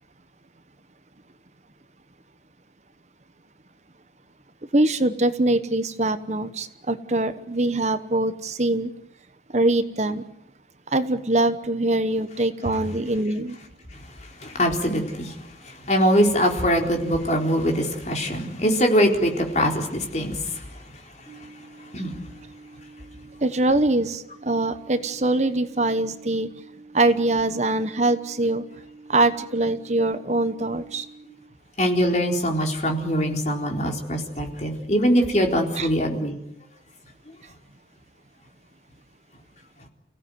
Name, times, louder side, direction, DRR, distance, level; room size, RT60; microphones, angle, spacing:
voice 1, 4.7-8.9 9.5-10.2 10.9-13.6 23.4-26.5 26.9-28.6 29.1-31.0 35.7-35.9, right 2 dB, 40° right, 1.1 m, -23 dB
voice 2, 14.4-15.4 15.9-20.5 21.9-22.1 31.8-36.4, equal, 40° left, 4.1 m, -22 dB
sound 1, 21.3-31.3, right 3 dB, ahead, 5.4 m, -48 dB
29.5 x 16.5 x 9.5 m
head